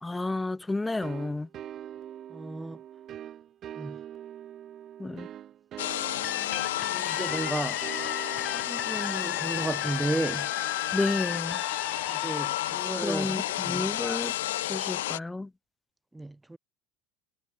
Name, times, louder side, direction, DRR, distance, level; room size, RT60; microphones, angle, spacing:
voice 1, 0.0-1.5 5.0-5.3 10.9-11.6 13.0-14.3 14.6-15.5, left 2 dB, 10° left, 1.3 m, -31 dB
sound 1, 1.0-11.5, right 11 dB, 45° right, 4.6 m, -44 dB
voice 2, 2.3-2.8 3.8-4.0 6.4-6.6 6.9-7.8 8.4-10.5 12.1-13.9 16.1-16.6, right 2 dB, 10° right, 0.6 m, -34 dB
sound 2, 5.8-15.2, left 15 dB, 80° left, 1.7 m, -31 dB
sound 3, 6.2-13.8, left 9 dB, 40° left, 2.3 m, -37 dB
hypercardioid pair, 85°, 0 cm